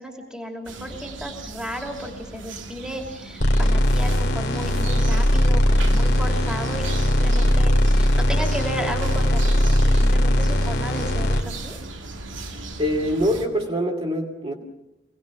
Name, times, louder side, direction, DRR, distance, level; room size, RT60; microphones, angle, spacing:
voice 1, 0.0-11.8, equal, 5° right, 2 dB, 3.0 m, -34 dB
sound 1, 0.7-13.5, right 2 dB, 75° right, 2.4 m, -37 dB
sound 2, 3.4-11.4, equal, 55° left, 2.5 m, -19 dB
voice 2, 12.3-14.5, equal, 30° right, 0 dB, 2.6 m, -25 dB
26.0 x 19.0 x 7.1 m, 0.93 s
head